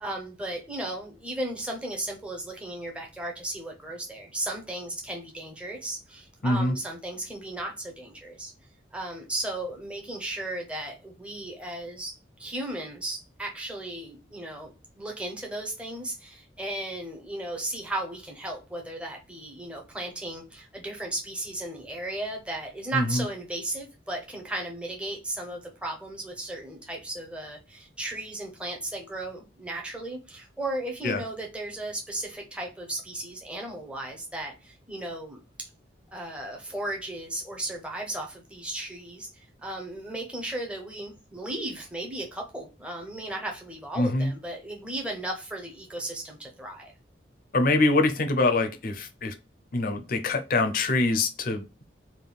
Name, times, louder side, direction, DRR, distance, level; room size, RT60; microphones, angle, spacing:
voice 1, 0.0-8.5 8.9-35.7 36.1-46.9, right 1 dB, 5° right, 0.6 m, -35 dB
voice 2, 6.4-6.8 22.9-23.2 31.0-31.2 44.0-44.3 47.5-49.3 49.7-51.6, left 2 dB, 45° left, 0.5 m, -24 dB
3.5 x 2.2 x 2.3 m
head